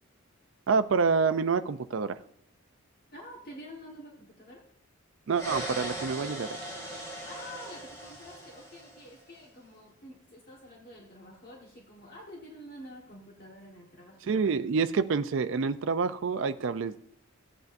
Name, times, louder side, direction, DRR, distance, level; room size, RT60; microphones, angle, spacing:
voice 1, 0.7-2.2 5.3-6.6 14.3-17.0, right 5 dB, 60° right, 0.4 m, -27 dB
voice 2, 3.1-4.6 7.2-14.2 16.8-16.9, equal, 45° left, 1.4 m, -48 dB
sound 1, 5.3-9.2, right 1 dB, 15° left, 2.4 m, -39 dB
14.5 x 8.2 x 2.6 m
head